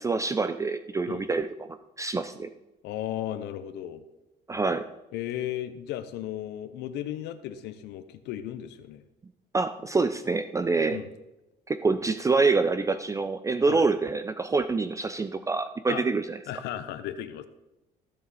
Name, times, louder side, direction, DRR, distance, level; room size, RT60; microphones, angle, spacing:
voice 1, 0.0-1.7 2.0-2.5 4.5-4.8 9.5-11.0 11.7-16.4, right 4 dB, 20° right, 11 dB, 0.5 m, -26 dB
voice 2, 2.8-4.0 5.1-9.0 10.9-11.1 13.7-13.8 15.9-16.0 16.5-17.5, left 12 dB, 85° left, 11 dB, 0.8 m, -35 dB
15.5 x 6.8 x 4.1 m, 0.97 s
cardioid pair, 110°, 17 cm